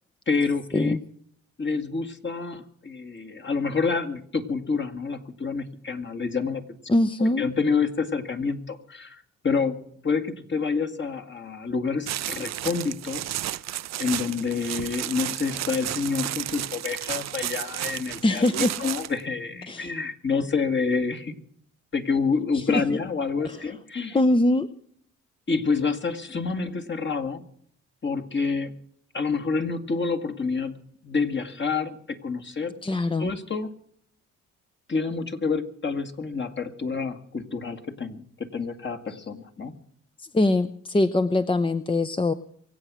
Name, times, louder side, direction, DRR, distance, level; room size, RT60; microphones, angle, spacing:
voice 1, 0.3-1.0 1.6-6.6 7.2-13.4 14.0-21.4 21.9-24.2 25.5-27.5 28.0-28.8 29.1-32.7 33.2-33.7 34.9-39.7, left 4 dB, 40° left, 6 dB, 1.9 m, -28 dB
voice 2, 6.9-7.4 18.2-18.8 19.7-19.9 22.5-23.0 23.4-23.8 24.1-24.7 32.8-33.3 39.1-39.2 40.2-42.3, left 2 dB, 15° left, 10 dB, 0.7 m, -23 dB
sound 1, 12.1-19.2, right 13 dB, 60° right, 0.5 m, -32 dB
24.0 x 8.1 x 6.2 m, 0.63 s
supercardioid pair, 70°, 30 cm